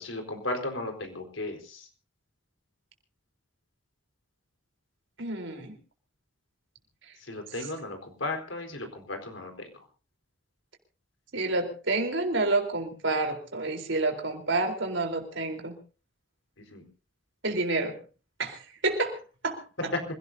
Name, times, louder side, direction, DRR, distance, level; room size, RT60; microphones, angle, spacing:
voice 1, 0.0-1.6 7.3-9.5 16.7-16.8, left 2 dB, 80° left, 4 dB, 4.2 m, -35 dB
voice 2, 5.2-5.7 7.6-7.7 11.3-15.8 17.4-18.0 18.4-19.2 19.4-19.9, right 2 dB, 70° right, 5 dB, 4.0 m, -29 dB
26.5 x 17.0 x 2.8 m, 0.36 s
head